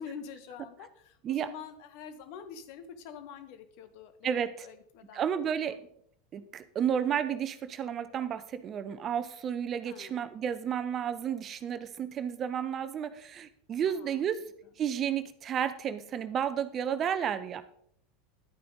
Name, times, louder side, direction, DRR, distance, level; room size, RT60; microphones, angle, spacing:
voice 1, 0.0-5.8 9.8-10.2 13.9-14.2, left 7 dB, 50° left, 9 dB, 1.5 m, -46 dB
voice 2, 4.2-4.7 5.1-5.7 6.3-14.4 14.8-17.6, right 8 dB, 35° right, 13 dB, 0.8 m, -32 dB
11.5 x 9.4 x 3.9 m, 0.66 s
figure-of-eight pair, 80°, 0 cm